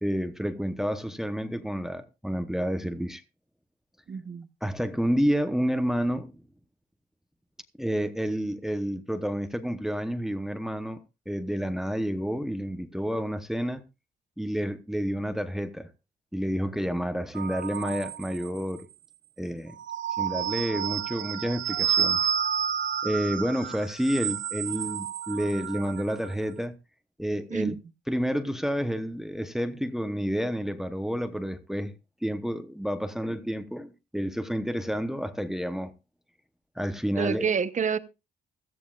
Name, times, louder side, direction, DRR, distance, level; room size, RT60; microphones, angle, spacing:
voice 1, 0.0-3.2 4.6-6.4 7.8-11.0 11.3-13.8 14.4-15.9 16.3-18.9 19.4-19.7 20.2-22.3 23.0-26.7 27.2-27.7 28.1-31.9 32.2-35.9 36.7-37.5, equal, ahead, 0.9 m, -29 dB
voice 2, 4.1-4.5 27.5-27.8 37.2-38.0, right 6 dB, 40° right, 1.0 m, -28 dB
sound 1, 17.4-18.8 19.7-26.3, right 8 dB, 70° right, 0.8 m, -30 dB
16.5 x 13.5 x 2.4 m
cardioid pair, 90°, 20 cm